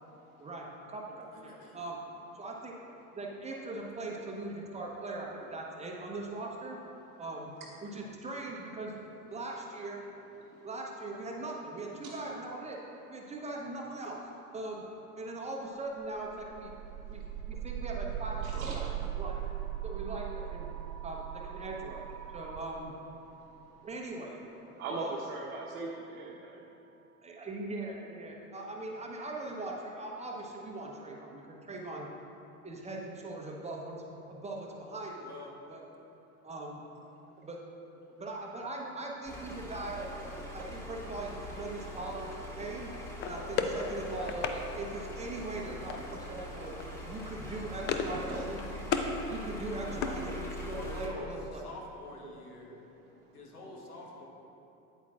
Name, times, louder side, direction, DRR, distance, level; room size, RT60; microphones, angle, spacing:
voice 1, 0.4-2.0 2.3-2.8 3.2-6.8 7.2-7.5 7.8-9.0 9.3-10.0 10.6-12.8 13.1-14.2 14.5-14.9 15.2-16.7 17.1-18.9 19.2-19.4 19.8-20.7 21.0-22.9 23.8-24.4 24.9-25.2 27.2-32.1 32.6-35.3 35.7-35.8 36.4-36.8 37.4-37.6 38.2-40.1 40.5-42.9 43.3-46.8 47.1-48.7 49.3-51.6, right 2 dB, 15° right, -1 dB, 0.8 m, -40 dB
voice 2, 1.5-1.8 35.2-35.5 50.7-52.6 53.3-54.3, left 2 dB, 80° left, -1 dB, 1.3 m, -46 dB
sound 1, 16.0-26.0, right 11 dB, 40° right, 0.5 m, -40 dB
voice 3, 17.0-17.4 18.4-19.1 23.2-23.9 24.7-26.7 40.6-40.7 45.6-45.8 47.9-48.8 49.8-50.3, right 3 dB, 65° right, -2 dB, 0.9 m, -41 dB
sound 2, 39.2-51.1, equal, 5° left, 1.0 m, -43 dB
sound 3, 43.2-44.6 45.9-46.3 46.6-46.8 47.2-48.2 48.5-49.1 49.5-50.8, left 6 dB, 25° left, 0.4 m, -35 dB
8.9 x 8.3 x 2.4 m, 3.0 s
figure-of-eight pair, 80°, 45 cm